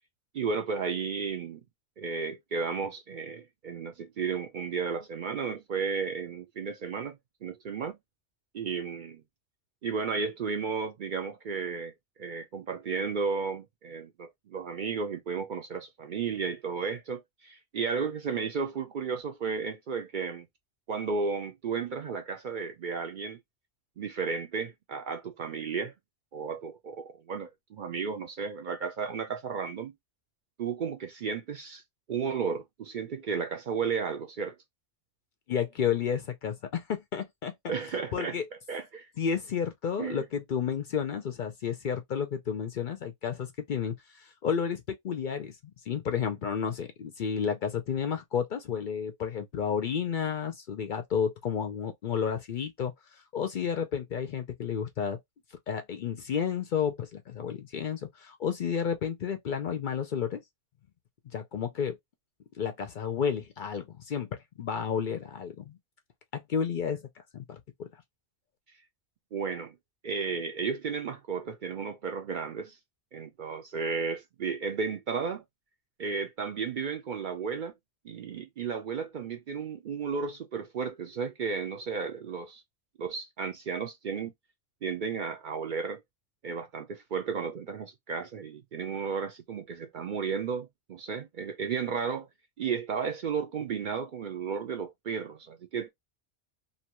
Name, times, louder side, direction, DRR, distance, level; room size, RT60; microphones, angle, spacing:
voice 1, 0.3-1.6 2.0-8.0 8.5-9.2 9.8-11.9 12.2-20.5 20.9-23.4 24.0-25.9 26.3-29.9 30.6-31.8 32.1-34.6 37.7-38.4 38.7-39.1 40.0-40.2 69.3-69.7 70.0-72.8 73.1-75.4 76.0-77.7 78.0-82.6 83.0-84.3 84.8-86.0 86.4-92.3 92.6-95.9, right 5 dB, 55° right, 0.6 m, -33 dB
voice 2, 35.5-37.5 38.1-38.5 39.2-45.6 45.9-52.9 53.3-55.2 55.7-60.4 61.3-62.0 62.6-65.8 66.3-67.1 67.3-67.9, left 7 dB, 55° left, 0.6 m, -31 dB
2.7 x 2.2 x 2.9 m
omnidirectional pair, 1.2 m